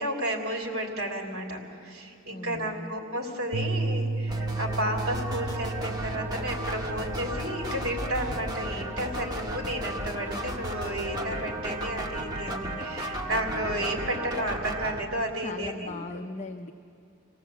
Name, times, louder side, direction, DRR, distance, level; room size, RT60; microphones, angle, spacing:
voice 1, 0.0-15.9, right 1 dB, 70° right, 1 dB, 3.3 m, -32 dB
voice 2, 2.3-3.0 15.4-16.7, left 2 dB, 35° left, 5 dB, 0.6 m, -38 dB
sound 1, 3.5-11.9, right 3 dB, 50° right, 0.9 m, -35 dB
sound 2, 4.3-15.0, right 1 dB, 20° right, 1.7 m, -34 dB
27.0 x 17.5 x 8.3 m, 2.5 s
head